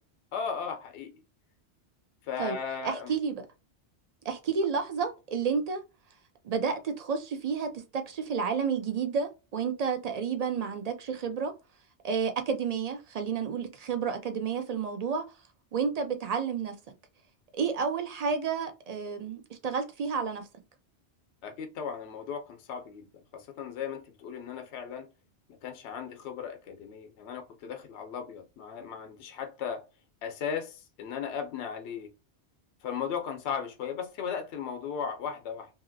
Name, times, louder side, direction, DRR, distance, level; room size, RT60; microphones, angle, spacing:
voice 1, 0.3-1.2 2.3-3.1 21.4-25.1 25.6-29.8 30.2-32.1 32.8-35.7, left 7 dB, 80° left, 0.8 m, -36 dB
voice 2, 2.8-3.4 4.2-5.8 6.4-11.5 12.0-15.2 15.7-16.8 17.5-20.4, right 6 dB, 55° right, 0.4 m, -30 dB
2.8 x 2.8 x 2.6 m
omnidirectional pair, 1.1 m